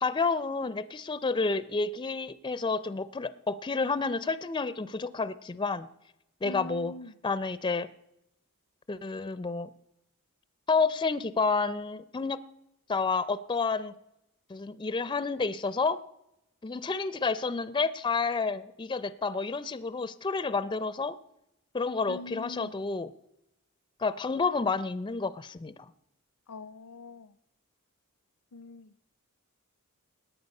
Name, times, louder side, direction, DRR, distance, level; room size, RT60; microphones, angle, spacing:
voice 1, 0.0-5.9 6.4-6.9 7.2-7.9 8.9-9.7 10.7-12.4 12.9-13.9 14.5-16.0 16.6-21.1 21.7-23.1 24.0-25.9, left 4 dB, 20° left, 0.4 m, -30 dB
voice 2, 6.4-7.1 22.1-22.7 26.5-27.3 28.5-29.0, left 2 dB, 80° left, 0.5 m, -43 dB
17.5 x 10.0 x 5.4 m
head